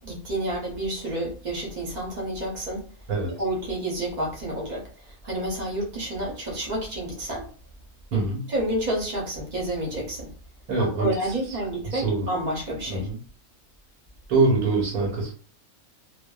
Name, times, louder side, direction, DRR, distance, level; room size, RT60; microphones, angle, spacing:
voice 1, 0.0-2.8 3.4-7.5 8.5-10.3 10.8-13.1, right 1 dB, 40° right, -2 dB, 0.7 m, -29 dB
voice 2, 8.1-8.5 10.7-11.6 11.8-12.3 12.9-13.2 14.3-15.3, right 3 dB, 80° right, -3 dB, 1.2 m, -24 dB
2.6 x 2.2 x 2.2 m, 0.43 s
omnidirectional pair, 1.5 m